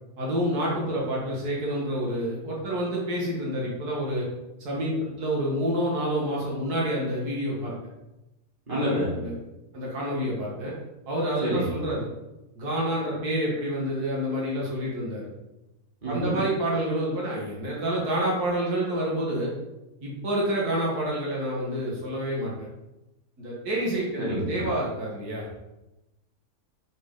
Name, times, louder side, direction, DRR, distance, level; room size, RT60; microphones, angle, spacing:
voice 1, 0.2-4.3 4.6-7.7 9.2-9.3 9.7-10.7 11.1-12.1 12.6-15.2 16.1-19.5 20.0-22.7 23.4-25.5, right 1 dB, 85° right, -4 dB, 2.3 m, -28 dB
voice 2, 8.7-9.1 11.4-11.7 16.0-16.4 24.2-24.6, equal, 35° right, -8 dB, 3.3 m, -27 dB
7.6 x 6.2 x 3.8 m, 0.98 s
omnidirectional pair, 1.6 m